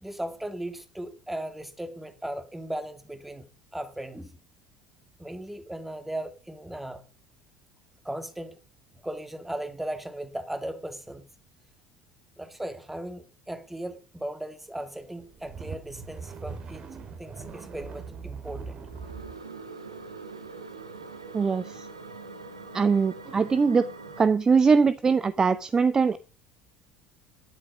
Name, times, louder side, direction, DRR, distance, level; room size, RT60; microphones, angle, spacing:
voice 1, 0.0-4.4 5.2-7.0 8.0-8.6 8.9-11.2 12.4-16.9 17.2-18.8, right 1 dB, 5° right, 2.0 m, -37 dB
sound 1, 15.1-19.4, right 5 dB, 40° right, 2.9 m, -40 dB
sound 2, 18.9-24.3, right 4 dB, 85° right, 1.4 m, -43 dB
voice 2, 21.3-21.9 22.7-23.9 24.2-26.2, right 5 dB, 25° right, 0.7 m, -22 dB
12.5 x 10.5 x 5.1 m
figure-of-eight pair, 65°, 3 cm